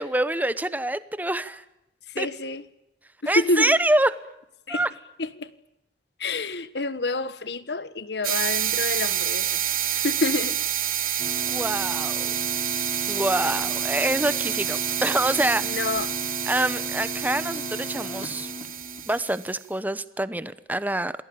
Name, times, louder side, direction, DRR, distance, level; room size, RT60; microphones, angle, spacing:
voice 1, 0.0-1.6 2.2-2.3 3.3-4.1 4.7-4.9 11.5-12.3 13.1-15.8 16.5-18.5 19.1-21.1, right 1 dB, 10° right, 1.0 m, -26 dB
voice 2, 2.1-2.7 3.2-3.7 4.7-4.8 5.2-5.5 6.2-9.6 9.9-10.6 11.0-11.3 15.6-16.1, left 2 dB, 75° left, 1.4 m, -28 dB
sound 1, 8.2-19.5, right 11 dB, 55° right, 2.9 m, -28 dB
sound 2, 11.2-19.2, left 2 dB, 35° left, 4.3 m, -37 dB
28.0 x 19.5 x 8.8 m
head